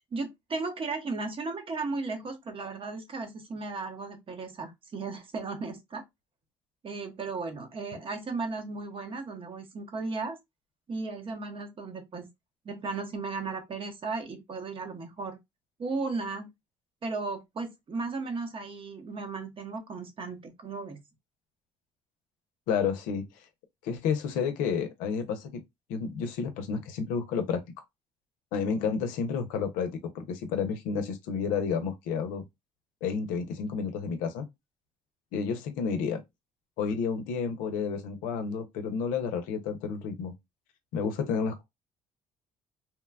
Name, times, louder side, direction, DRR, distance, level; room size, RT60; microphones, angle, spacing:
voice 1, 0.1-6.0 6.8-10.4 10.9-12.3 12.6-15.4 15.8-16.5 17.0-21.0, right 3 dB, 40° right, 0.9 m, -35 dB
voice 2, 22.7-23.3 23.8-25.5 25.9-27.6 28.5-32.4 33.0-34.4 35.3-36.2 36.8-40.3 40.9-41.6, left 6 dB, 80° left, 0.6 m, -30 dB
2.9 x 2.2 x 2.3 m
supercardioid pair, 70°, 14 cm